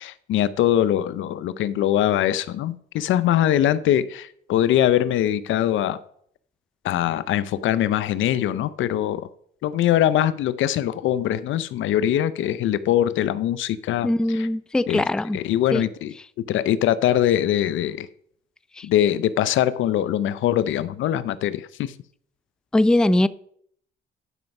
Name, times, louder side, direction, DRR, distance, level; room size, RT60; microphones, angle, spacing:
voice 1, 0.0-6.0 6.8-9.3 9.6-14.1 14.3-14.5 14.9-15.0 15.3-16.1 16.5-18.1 18.8-21.9, left 11 dB, 80° left, 0.6 m, -22 dB
voice 2, 14.0-15.4 15.7-15.9 18.8-18.9 22.7-23.3, left 1 dB, 5° left, 0.4 m, -21 dB
11.0 x 5.3 x 5.9 m
cardioid pair, 90°, 20 cm